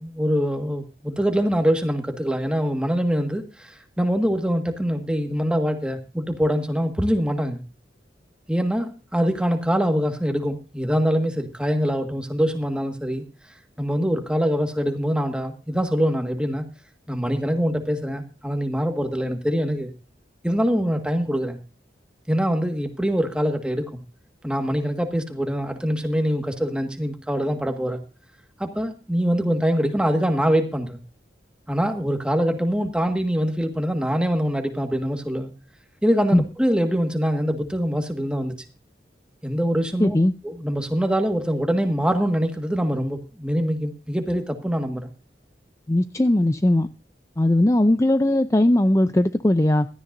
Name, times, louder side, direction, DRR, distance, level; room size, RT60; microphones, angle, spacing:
voice 1, 0.0-7.6 8.5-13.2 13.8-16.6 17.1-19.9 20.4-21.6 22.3-24.0 24.4-28.0 28.6-31.0 31.7-35.5 36.0-38.5 39.4-40.2 40.4-45.1, equal, 5° right, 5 dB, 1.7 m, -24 dB
voice 2, 40.0-40.3 45.9-46.9 47.4-49.9, left 1 dB, 15° left, 10 dB, 0.5 m, -19 dB
16.5 x 13.5 x 2.7 m, 0.32 s
head